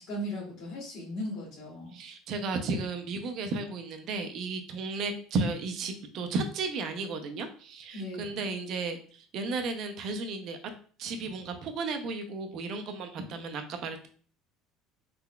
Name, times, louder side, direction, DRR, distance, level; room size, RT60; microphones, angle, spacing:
voice 1, 0.0-2.0 7.9-8.5, equal, 50° left, -9 dB, 1.7 m, -37 dB
voice 2, 1.9-10.6 11.0-14.1, right 3 dB, 50° right, 6 dB, 0.6 m, -34 dB
3.8 x 3.3 x 2.2 m, 0.44 s
cardioid pair, 140°, 0 cm